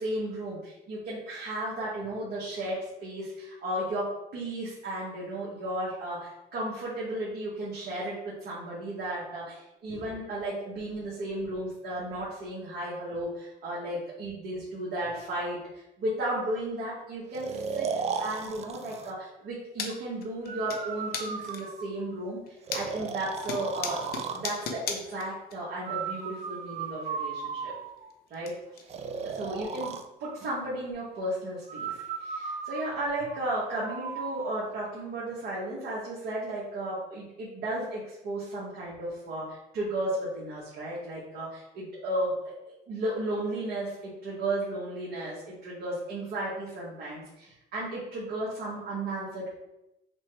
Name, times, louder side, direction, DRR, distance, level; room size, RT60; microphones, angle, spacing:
voice 1, 0.0-17.9 18.2-22.4 22.7-24.0 24.3-27.7 28.3-28.5 29.3-29.9 30.2-49.6, right 1 dB, 70° right, -7 dB, 1.3 m, -34 dB
Breathing, 17.3-19.1 20.5-22.1 22.7-24.5 25.8-28.1 28.9-30.1 31.7-34.5, right 6 dB, 40° right, 0.4 m, -36 dB
sound 1, 19.8-19.9 20.2-20.8 21.1-21.8 22.3-23.1 23.4-25.6 25.8-25.9 27.2-27.3 27.6-28.5 28.7-28.8 29.3-29.4 29.8-29.9 30.5-30.6 31.8-31.9, left 6 dB, 65° left, 0.7 m, -36 dB
5.9 x 2.3 x 3.2 m, 0.91 s
cardioid pair, 110°, 17 cm